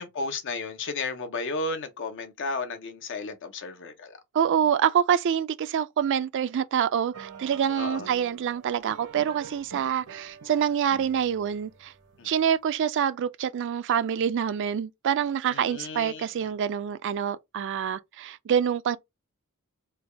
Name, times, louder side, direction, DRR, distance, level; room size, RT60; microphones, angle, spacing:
voice 1, 0.0-4.2 7.8-8.1 12.2-12.3 15.5-16.2, left 3 dB, 55° left, 0.7 m, -33 dB
voice 2, 4.3-11.9 12.2-19.0, right 8 dB, 55° right, 0.3 m, -26 dB
sound 1, 7.1-12.4, right 6 dB, 80° right, 0.7 m, -46 dB
3.3 x 2.2 x 3.3 m
head